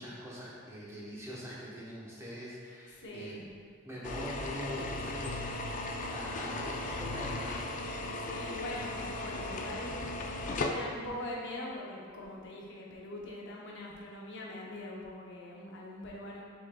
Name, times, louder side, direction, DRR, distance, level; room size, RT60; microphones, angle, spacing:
voice 1, 0.0-3.4 3.8-8.1, equal, 15° right, -7 dB, 0.8 m, -44 dB
voice 2, 3.0-3.4 6.0-6.4 8.2-9.9 10.5-16.4, left 1 dB, 65° left, -3 dB, 0.7 m, -42 dB
sound 1, 4.0-10.7, left 2 dB, 40° left, 0.3 m, -36 dB
6.1 x 3.7 x 2.2 m, 2.2 s
head